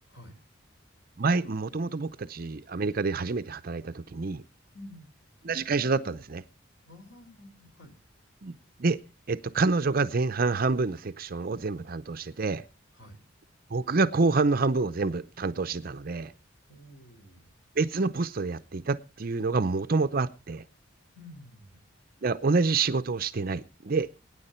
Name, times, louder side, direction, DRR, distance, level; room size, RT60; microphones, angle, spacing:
voice 1, 0.1-0.4 4.7-5.1 6.8-7.9 12.9-13.2 16.7-17.4 21.1-21.8, left 1 dB, 75° left, 5.2 m, -49 dB
voice 2, 1.2-4.4 5.4-6.4 8.4-9.0 9.3-12.6 13.7-16.3 17.8-20.6 22.2-24.1, right 3 dB, 45° right, 0.6 m, -27 dB
22.0 x 9.8 x 4.3 m
head